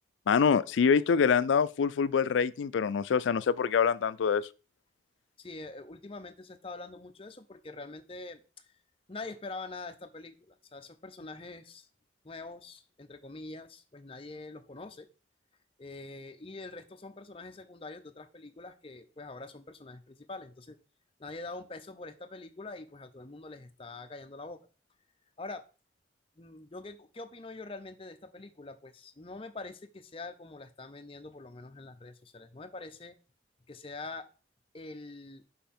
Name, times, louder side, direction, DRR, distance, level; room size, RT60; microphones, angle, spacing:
voice 1, 0.3-4.5, left 6 dB, 90° left, 0.4 m, -25 dB
voice 2, 5.4-8.7 9.1-11.9 12.2-15.1 15.8-20.8 21.2-24.7 25.4-25.7 26.4-33.2 33.7-34.3 34.7-35.4, left 3 dB, 30° left, 0.7 m, -44 dB
5.7 x 5.6 x 4.3 m
head